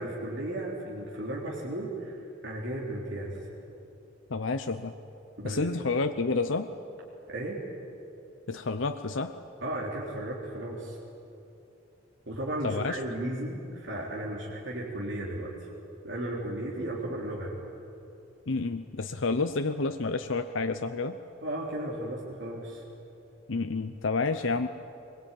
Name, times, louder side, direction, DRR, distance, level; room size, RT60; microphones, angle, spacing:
voice 1, 0.0-2.2 2.4-3.5 5.4-5.7 7.3-7.6 9.6-11.0 12.3-15.5 16.0-17.5 21.4-22.8, right 1 dB, 60° right, -4 dB, 3.6 m, -35 dB
voice 2, 4.3-4.9 5.4-6.7 8.5-9.3 12.6-13.0 18.5-21.2 23.5-24.7, left 3 dB, 70° left, 7 dB, 0.8 m, -29 dB
23.0 x 22.0 x 9.2 m, 2.8 s
head